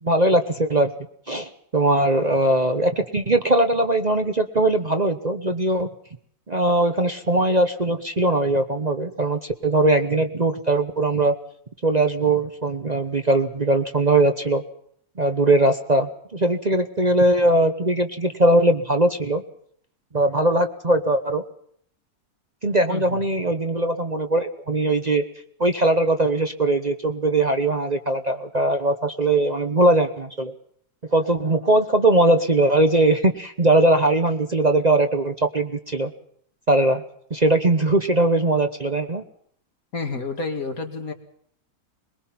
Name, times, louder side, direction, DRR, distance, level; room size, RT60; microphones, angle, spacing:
voice 1, 0.0-0.9 1.3-5.9 6.5-11.3 11.8-14.6 15.2-19.4 20.1-21.4 22.6-25.2 25.6-30.5 31.1-36.1 36.7-37.0 37.3-39.2, right 2 dB, 30° right, 7 dB, 1.0 m, -20 dB
voice 2, 39.9-41.1, left 3 dB, 65° left, 4 dB, 2.7 m, -29 dB
22.0 x 21.5 x 5.9 m, 0.64 s
omnidirectional pair, 1.6 m